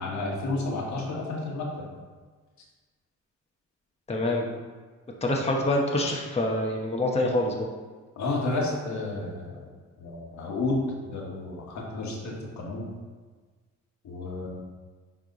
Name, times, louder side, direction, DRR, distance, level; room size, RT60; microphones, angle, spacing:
voice 1, 0.0-1.9 8.1-9.7 10.0-12.9 14.0-14.5, left 2 dB, 70° left, -2 dB, 1.7 m, -31 dB
voice 2, 4.1-4.5 5.2-7.7, left 1 dB, 20° left, -1 dB, 1.1 m, -26 dB
10.0 x 3.5 x 4.0 m, 1.4 s
cardioid pair, 90°, 30 cm